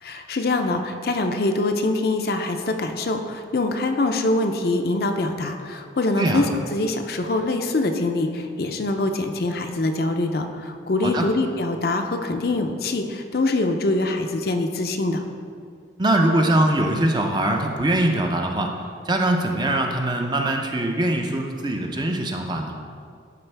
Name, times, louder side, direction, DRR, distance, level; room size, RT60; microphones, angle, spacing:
voice 1, 0.0-15.2, left 2 dB, 55° left, 5 dB, 0.5 m, -24 dB
voice 2, 16.0-18.7 19.0-22.8, right 1 dB, 25° right, 3 dB, 0.5 m, -22 dB
11.5 x 4.4 x 3.3 m, 2.2 s
head